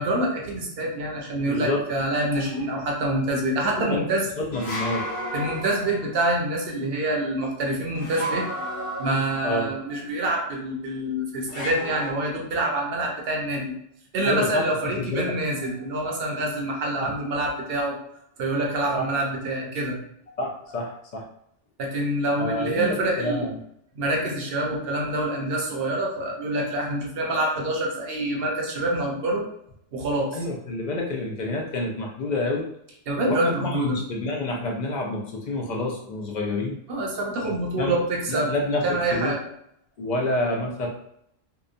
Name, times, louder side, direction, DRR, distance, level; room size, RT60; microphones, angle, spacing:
voice 1, 0.0-4.3 5.3-8.5 9.0-13.7 14.1-18.0 18.4-20.0 21.8-23.5 24.0-29.5 29.9-30.4 33.1-34.0 36.9-38.5 38.8-39.4, right 1 dB, 60° right, -1 dB, 0.8 m, -26 dB
voice 2, 1.4-1.8 3.9-4.1 4.4-5.0 9.4-9.7 14.2-14.7 15.0-15.3 17.0-17.1 18.9-19.1 20.4-21.2 22.4-23.6 30.3-32.7 33.2-36.8 37.4-38.0 38.3-39.3 40.0-40.9, left 2 dB, 55° left, 0 dB, 0.5 m, -28 dB
sound 1, 2.3-2.9 4.5-6.3 7.9-9.7 11.5-12.1, equal, 90° left, 1.0 m, -33 dB
2.8 x 2.1 x 2.5 m, 0.74 s
omnidirectional pair, 1.2 m